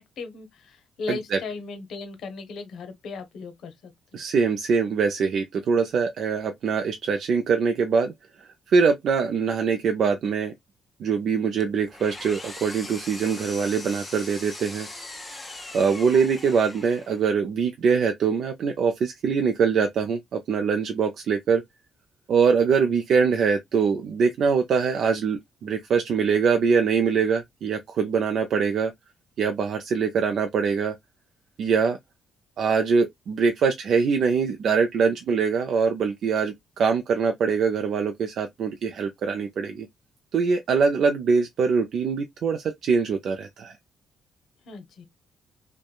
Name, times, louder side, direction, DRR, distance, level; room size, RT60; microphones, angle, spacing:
voice 1, 0.0-4.2 44.6-45.0, left 4 dB, 70° left, 0.7 m, -37 dB
voice 2, 1.1-1.4 4.1-8.1 8.4-10.5 11.0-14.9 15.7-21.6 22.3-28.9 29.4-30.9 31.6-32.0 32.6-39.9 40.3-43.8, right 5 dB, 65° right, 0.4 m, -23 dB
Engine, 11.6-17.3, left 2 dB, 15° left, 0.7 m, -40 dB
2.9 x 2.2 x 2.2 m
cardioid pair, 90°, 0 cm